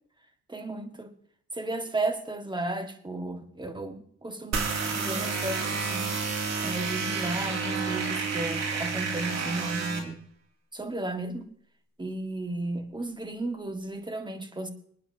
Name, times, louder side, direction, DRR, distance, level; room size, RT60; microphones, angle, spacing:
voice 1, 0.5-1.1 1.5-4.6 5.0-6.1 6.6-10.2 10.7-11.5 12.0-14.7, right 2 dB, 15° right, 1.8 m, -34 dB
sound 1, 4.5-10.0, right 5 dB, 60° right, 2.8 m, -30 dB
26.5 x 9.7 x 2.9 m
cardioid pair, 90°, 30 cm